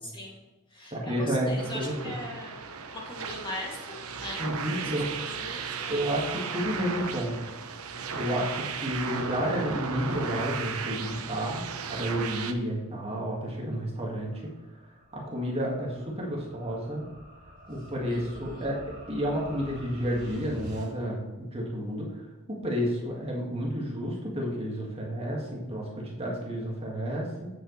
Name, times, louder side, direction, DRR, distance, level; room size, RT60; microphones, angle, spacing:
voice 1, 0.0-0.4 0.7-2.6 2.9-6.0 8.3-8.5 18.1-18.7, left 1 dB, 20° left, -3 dB, 2.3 m, -40 dB
voice 2, 0.9-2.1 4.4-5.1 5.9-7.4 8.1-11.6 11.9-14.4 15.1-17.0 17.7-18.8 19.1-22.2 22.5-27.5, equal, 25° right, -3 dB, 1.9 m, -31 dB
sound 1, 1.6-12.5, right 5 dB, 75° right, 0.9 m, -35 dB
sound 2, 13.5-20.9, equal, 45° right, 2.9 m, -47 dB
8.9 x 7.8 x 3.2 m, 1.2 s
head